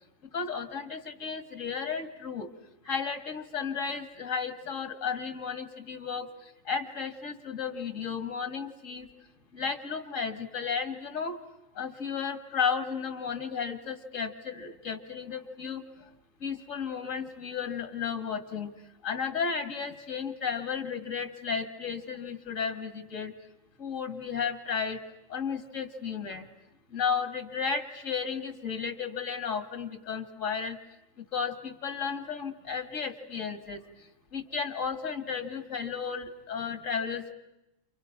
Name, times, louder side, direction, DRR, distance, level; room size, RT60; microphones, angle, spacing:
voice 1, 0.3-2.5 2.8-9.1 9.5-11.4 11.8-15.9 16.4-18.7 19.0-23.3 23.8-25.0 25.3-26.5 26.9-30.8 31.2-33.8 34.3-37.3, left 6 dB, 80° left, 10 dB, 2.4 m, -33 dB
29.5 x 29.0 x 6.0 m, 0.91 s
omnidirectional pair, 1.3 m